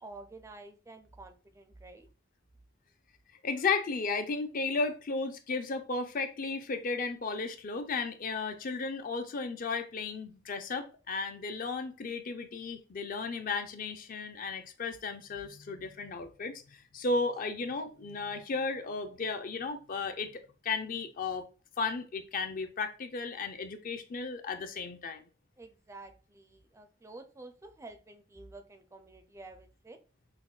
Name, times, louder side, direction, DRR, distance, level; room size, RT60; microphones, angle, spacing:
voice 1, 0.0-2.1 25.6-30.0, right 2 dB, 15° right, 6 dB, 0.4 m, -50 dB
voice 2, 3.4-21.4 21.8-25.2, left 4 dB, 45° left, 7 dB, 0.5 m, -34 dB
5.9 x 2.1 x 2.3 m, 0.35 s
head